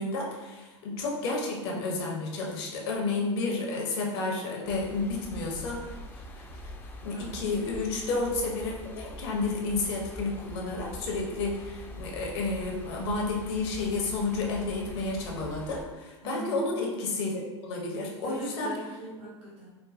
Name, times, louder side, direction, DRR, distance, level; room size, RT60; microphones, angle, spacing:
voice 1, 0.0-6.0 7.0-18.8, left 3 dB, 60° left, -1 dB, 0.9 m, -31 dB
sound 1, 4.7-15.9, left 1 dB, 15° left, 0.4 m, -44 dB
voice 2, 7.1-7.5 16.2-16.7 18.2-19.7, equal, 80° right, -7 dB, 1.1 m, -40 dB
4.4 x 2.3 x 2.5 m, 1.2 s
hypercardioid pair, 90°, 15 cm